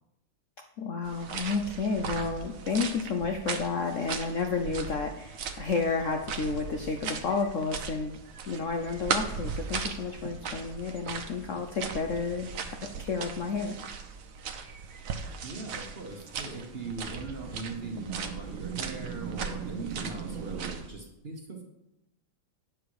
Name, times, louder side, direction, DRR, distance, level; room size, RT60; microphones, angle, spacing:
voice 1, 0.8-8.2 8.5-13.8, left 4 dB, 80° left, 4 dB, 0.6 m, -31 dB
sound 1, 1.0-20.9, right 6 dB, 60° right, 0.9 m, -38 dB
voice 2, 15.4-21.6, right 3 dB, 35° right, 1 dB, 1.1 m, -40 dB
sound 2, 15.9-20.7, right 6 dB, 80° right, 1.6 m, -40 dB
9.0 x 7.2 x 4.8 m, 0.88 s
omnidirectional pair, 2.2 m